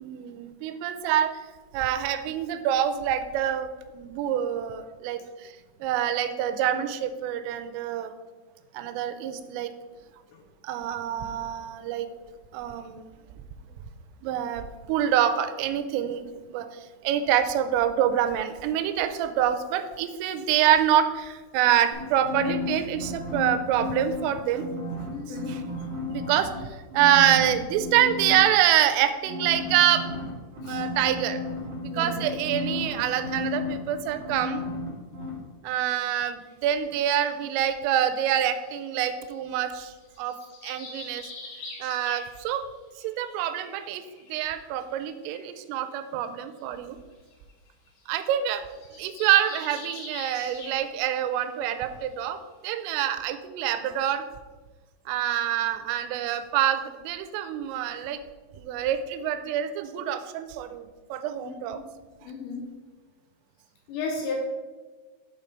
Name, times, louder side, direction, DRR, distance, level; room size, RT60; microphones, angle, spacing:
voice 1, 0.0-1.4 1.7-5.5 5.8-8.1 8.7-9.7 10.6-12.1 12.5-13.1 14.2-24.7 25.3-25.6 26.1-30.0 30.7-31.4 31.9-34.6 35.6-40.4 40.6-41.3 41.8-42.7 43.0-44.0 44.3-47.0 48.1-48.6 49.0-52.4 52.6-54.2 55.1-58.2 58.6-61.8, right 10 dB, 85° right, 9 dB, 3.1 m, -26 dB
sound 1, 21.9-24.2 24.5-26.6 26.9-28.4 29.2-34.9 35.1-35.3, left 2 dB, 55° right, 2.0 m, -33 dB
voice 2, 25.1-25.6 30.6-30.8 31.9-32.2 61.4-61.8 62.2-62.7 63.9-64.3, left 4 dB, 75° left, 1 dB, 2.6 m, -34 dB
sound 2, 36.4-36.5 37.2-39.5 40.0-42.7 42.9-44.5 45.0-45.1 45.3-45.5 46.6-46.7 46.9-47.0 47.3-47.5 47.9-48.0 48.3-51.2 51.5-51.6 52.1-52.2 52.8-52.9, left 3 dB, 60° left, 3.4 m, -44 dB
7.7 x 4.4 x 5.2 m, 1.3 s
omnidirectional pair, 5.7 m